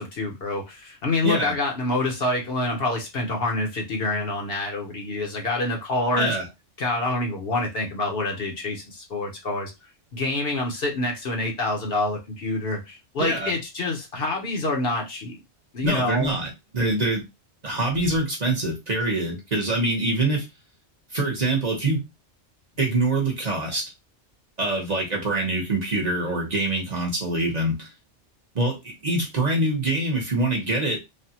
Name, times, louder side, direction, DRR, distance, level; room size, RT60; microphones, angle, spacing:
voice 1, 0.0-6.4 6.8-9.7 10.1-15.4 15.7-16.4, left 2 dB, 60° left, 1.0 m, -27 dB
voice 2, 1.2-1.5 6.2-6.5 13.2-13.5 15.8-17.2 17.6-20.4 21.1-22.0 22.8-23.8 24.6-27.9 28.5-31.0, right 2 dB, 40° right, 0.9 m, -24 dB
3.3 x 2.2 x 2.8 m
omnidirectional pair, 1.2 m